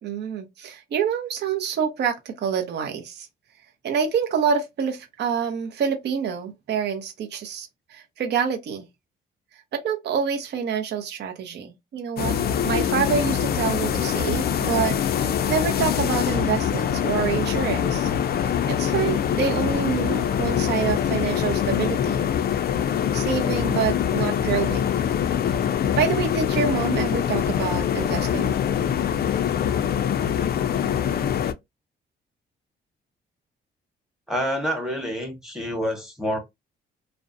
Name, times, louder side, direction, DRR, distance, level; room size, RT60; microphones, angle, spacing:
voice 1, 0.0-3.3 3.8-8.9 9.7-18.1 18.7-22.3 23.1-24.9 26.0-28.5, right 7 dB, 60° right, 0.6 m, -27 dB
sound 1, 12.2-31.5, left 9 dB, 50° left, 0.4 m, -24 dB
voice 2, 13.9-14.2 34.3-36.4, equal, ahead, 1.0 m, -28 dB
2.5 x 2.1 x 2.5 m
cardioid pair, 90°, 20 cm